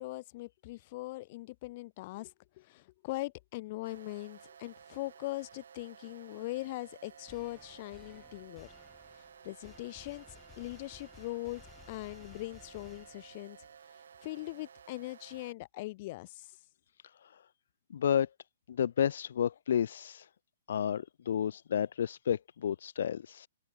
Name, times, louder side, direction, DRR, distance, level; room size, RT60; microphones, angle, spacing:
voice 1, 0.0-8.7 9.2-10.2 10.6-11.6 11.9-13.6 14.2-16.6, left 20 dB, 40° left, 1.3 m, -41 dB
sound 1, 3.8-15.5, right 7 dB, 75° right, 5.1 m, -55 dB
sound 2, 7.3-13.6, left 8 dB, 15° left, 2.7 m, -58 dB
voice 2, 17.9-18.3 18.7-20.3 20.7-23.5, left 9 dB, 70° left, 0.4 m, -31 dB
hypercardioid pair, 145°, 0 cm